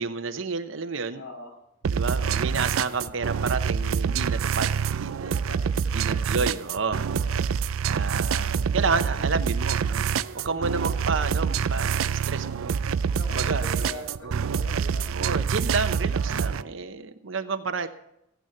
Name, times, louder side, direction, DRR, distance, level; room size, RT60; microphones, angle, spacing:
voice 1, 0.0-1.2 1.9-5.4 5.9-7.1 7.8-10.0 10.4-12.7 13.3-14.3 15.1-17.9, right 4 dB, 70° right, 9 dB, 0.8 m, -30 dB
voice 2, 1.1-1.6 2.1-2.5 5.0-6.5 7.1-7.5 10.4-10.7 13.1-15.1 16.3-16.7, left 2 dB, 75° left, 1 dB, 4.8 m, -44 dB
sound 1, 1.8-16.6, right 6 dB, 85° right, 0.4 m, -26 dB
14.0 x 9.4 x 5.8 m, 0.82 s
head